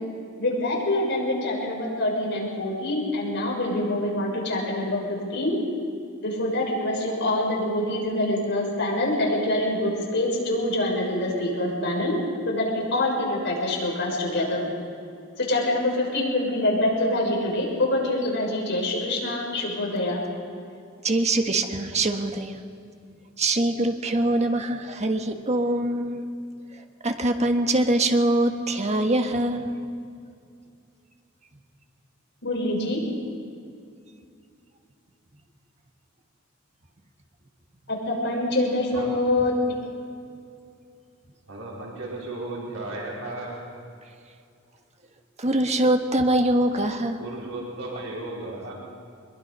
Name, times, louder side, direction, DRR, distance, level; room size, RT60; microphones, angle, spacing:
voice 1, 0.4-5.6 6.2-12.2 12.5-14.6 15.4-20.2 32.4-33.0 37.9-39.8, left 1 dB, 60° left, -2 dB, 6.5 m, -25 dB
voice 2, 21.0-22.6 23.4-26.2 27.0-29.8 45.4-47.2, right 1 dB, 35° right, 5 dB, 1.5 m, -23 dB
voice 3, 41.5-43.6 47.2-48.7, right 2 dB, 80° right, -4 dB, 4.7 m, -35 dB
23.0 x 22.0 x 5.6 m, 2.4 s
head